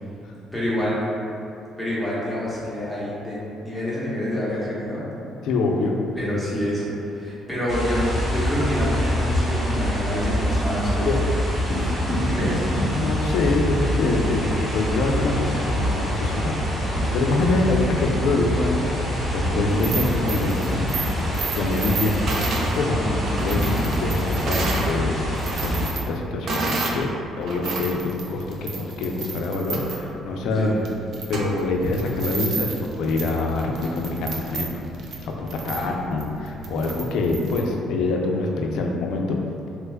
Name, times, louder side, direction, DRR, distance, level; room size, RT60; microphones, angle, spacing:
voice 1, 0.5-1.1 1.8-5.1 6.2-11.3 11.8-11.9 12.2-12.6 17.6-17.8 22.9-23.2 30.5-30.7 35.6-36.0, equal, 5° right, -9 dB, 0.8 m, -27 dB
voice 2, 5.4-6.0 11.0-11.2 12.0-12.6 12.9-19.0 19.3-21.2 21.5-23.0 23.4-25.2 25.6-27.1 27.4-30.7 31.3-34.7 35.4-39.4, left 3 dB, 75° left, 1 dB, 0.4 m, -25 dB
sound 1, 7.7-25.9, equal, 30° right, 0.9 m, -25 dB
sound 2, 19.7-24.9 25.3-27.0 27.4-37.6, right 4 dB, 50° right, 0.3 m, -32 dB
3.1 x 2.2 x 3.4 m, 2.7 s
cardioid pair, 160°, 0 cm